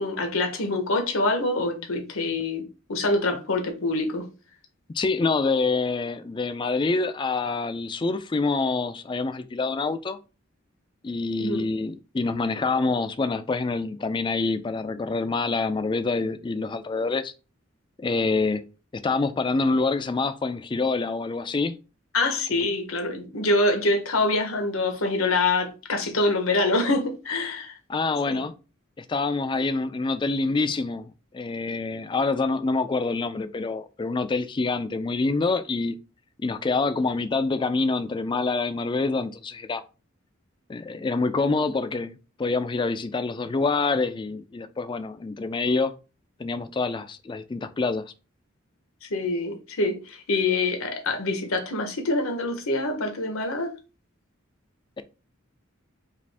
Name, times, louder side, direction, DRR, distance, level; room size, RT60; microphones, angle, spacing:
voice 1, 0.0-2.6 2.9-4.3 11.4-11.6 22.1-27.8 28.3-28.5 49.0-53.7, left 2 dB, 85° left, 1.0 m, -25 dB
voice 2, 4.9-10.2 11.0-17.3 18.0-18.6 18.9-21.8 27.9-28.5 29.0-36.0 36.4-39.8 40.7-45.9 46.4-48.0, left 3 dB, 25° left, 0.3 m, -26 dB
4.9 x 2.4 x 3.4 m
head